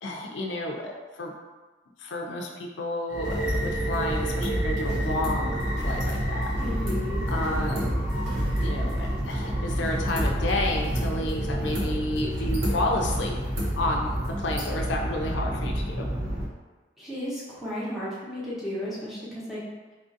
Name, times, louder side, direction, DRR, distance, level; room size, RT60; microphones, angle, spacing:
voice 1, 0.0-1.3 2.0-5.5 5.8-6.5 7.3-8.0 8.6-13.3 13.8-14.1 14.4-16.1, left 1 dB, 80° left, 0 dB, 0.5 m, -31 dB
sound 1, 3.1-16.4, equal, 90° right, 0.8 m, -28 dB
voice 2, 6.6-7.3 17.0-19.6, equal, ahead, -9 dB, 0.8 m, -34 dB
4.0 x 2.5 x 2.6 m, 1.3 s
head